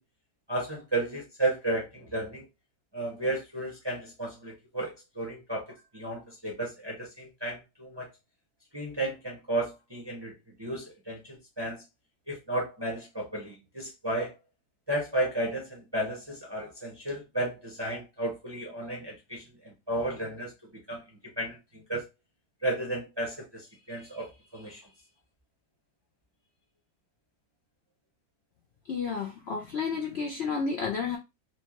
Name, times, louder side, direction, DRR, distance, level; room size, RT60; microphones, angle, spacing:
voice 1, 0.5-2.4 2.9-5.7 5.9-8.1 8.7-10.3 10.6-11.8 12.3-14.3 14.9-20.5 20.9-21.0 21.4-22.0 22.6-24.8, right 1 dB, 25° right, 0.5 m, -33 dB
voice 2, 28.9-31.2, left 5 dB, 85° left, 0.5 m, -31 dB
4.4 x 2.2 x 2.9 m
omnidirectional pair, 1.8 m